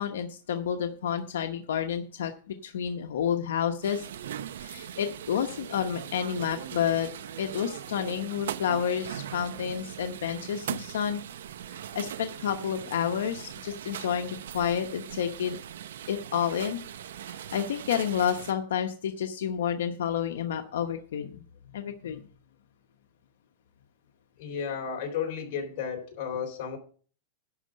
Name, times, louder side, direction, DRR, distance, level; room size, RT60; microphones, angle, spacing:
voice 1, 0.0-4.1 4.6-7.1 7.4-11.2 11.7-15.6 16.1-16.8 17.3-21.4 21.7-22.2, left 8 dB, 90° left, 5 dB, 0.9 m, -30 dB
sound 1, 3.8-18.5, right 10 dB, 85° right, 0.6 m, -40 dB
voice 2, 24.4-26.8, left 7 dB, 45° left, 3 dB, 3.5 m, -33 dB
11.0 x 4.9 x 6.4 m, 0.41 s
supercardioid pair, 155°, 0 cm